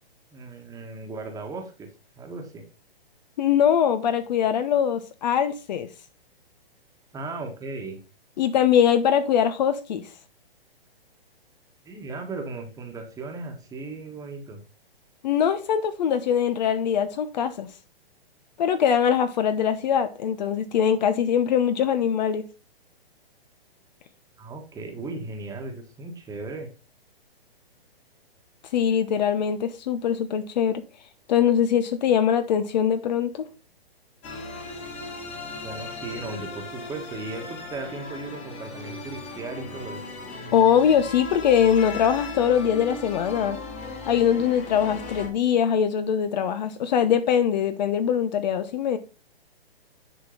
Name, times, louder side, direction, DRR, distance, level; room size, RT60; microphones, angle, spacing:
voice 1, 0.3-1.9 2.2-2.6 7.1-8.0 11.8-14.6 24.4-26.7 35.5-40.0, right 3 dB, 10° right, 1.5 m, -36 dB
voice 2, 3.4-5.9 8.4-10.0 15.2-17.7 18.6-22.4 28.7-30.8 31.3-33.5 40.5-43.6 44.1-49.0, left 8 dB, 45° left, 0.9 m, -22 dB
sound 1, 34.2-45.3, left 3 dB, 25° left, 1.8 m, -37 dB
10.5 x 4.4 x 3.9 m
hypercardioid pair, 135°, 31 cm